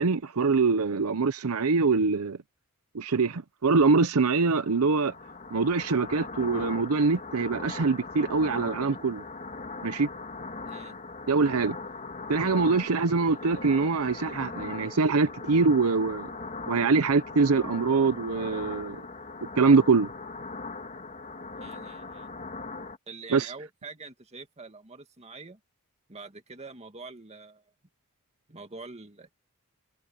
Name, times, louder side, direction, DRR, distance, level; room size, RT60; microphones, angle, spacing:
voice 1, 0.0-2.4 2.9-5.1 5.5-9.2 9.8-10.1 11.3-11.8 12.3-16.3 16.7-19.0 19.6-20.1 23.3-23.5, right 4 dB, 70° right, 0.7 m, -24 dB
sound 1, 4.4-23.0, left 3 dB, 35° left, 2.3 m, -40 dB
voice 2, 10.7-11.0 21.6-22.3 23.1-25.6 26.1-27.6 28.5-29.3, right 3 dB, 30° right, 2.2 m, -45 dB
sound 2, 13.9-18.9, right 1 dB, 45° right, 7.1 m, -54 dB
head